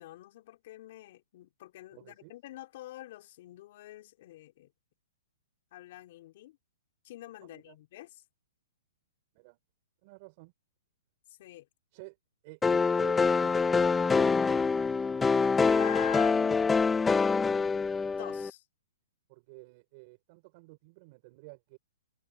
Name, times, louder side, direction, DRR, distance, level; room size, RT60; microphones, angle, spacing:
voice 1, 0.0-4.7 5.7-6.6 7.0-8.2 11.4-11.7 15.4-16.6 18.1-18.6, left 15 dB, 50° left, 3.7 m, -44 dB
voice 2, 1.9-2.3 7.4-7.8 9.3-9.6 10.0-10.5 11.9-12.2 12.4-14.7 19.3-21.8, right 25 dB, 40° right, 3.2 m, -52 dB
sound 1, 12.6-18.5, left 5 dB, 10° left, 0.5 m, -25 dB
hypercardioid pair, 150°, 0 cm